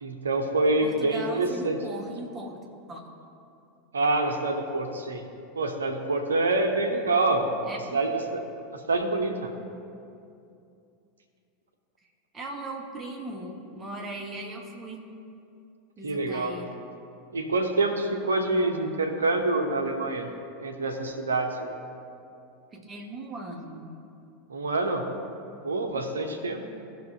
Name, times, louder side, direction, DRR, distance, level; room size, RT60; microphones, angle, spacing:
voice 1, 0.0-1.8 3.9-5.2 5.6-8.4 8.7-9.5 16.0-16.5 17.3-20.3 20.6-21.7 24.5-25.1 25.6-26.6, right 2 dB, 75° right, 4 dB, 0.9 m, -26 dB
voice 2, 0.8-2.6 2.9-3.0 7.7-8.0 12.3-15.1 16.0-16.8 22.7-24.0, right 1 dB, 20° right, 0 dB, 1.6 m, -38 dB
16.5 x 6.1 x 2.8 m, 2.6 s
figure-of-eight pair, 85°, 0 cm